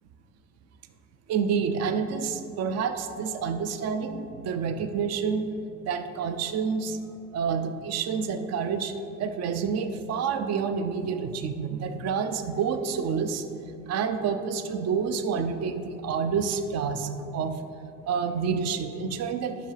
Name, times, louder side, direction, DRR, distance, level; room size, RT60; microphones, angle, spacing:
voice 1, 1.3-5.5 5.8-7.0 7.3-13.5 13.9-17.6 18.1-19.6, right 6 dB, 45° right, 9 dB, 0.6 m, -28 dB
11.5 x 3.8 x 3.4 m, 2.7 s
hypercardioid pair, 60°, 35 cm